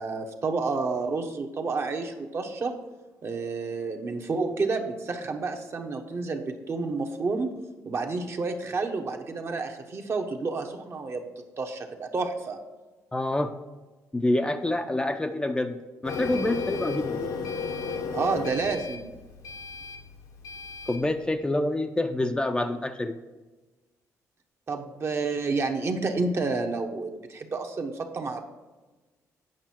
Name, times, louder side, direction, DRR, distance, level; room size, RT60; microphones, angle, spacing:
voice 1, 0.0-2.7 3.2-7.5 7.8-11.3 11.6-12.6 18.1-19.1 24.7-28.4, right 3 dB, 45° right, 4 dB, 1.0 m, -30 dB
voice 2, 13.1-13.5 14.1-15.8 16.0-17.3 20.9-23.1, left 1 dB, 15° left, 7 dB, 0.5 m, -27 dB
Printer, 16.0-21.1, left 5 dB, 80° left, 1.1 m, -34 dB
8.9 x 5.4 x 4.4 m, 1.2 s
cardioid pair, 85°, 6 cm